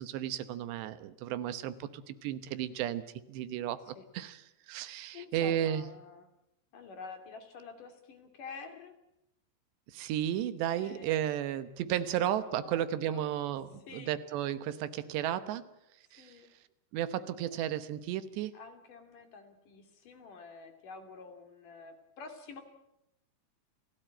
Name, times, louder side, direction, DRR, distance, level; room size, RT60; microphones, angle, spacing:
voice 1, 0.0-5.8 9.9-15.6 16.1-16.4 16.9-18.5, right 11 dB, 80° right, 13 dB, 3.3 m, -34 dB
voice 2, 4.7-6.3 6.7-8.9 10.7-11.5 12.1-12.3 12.6-13.3 13.8-14.2 16.2-16.5 17.5-17.7 17.9-18.0 18.5-22.6, left 4 dB, 55° left, 6 dB, 3.8 m, -49 dB
30.0 x 17.0 x 8.9 m, 0.84 s
omnidirectional pair, 4.9 m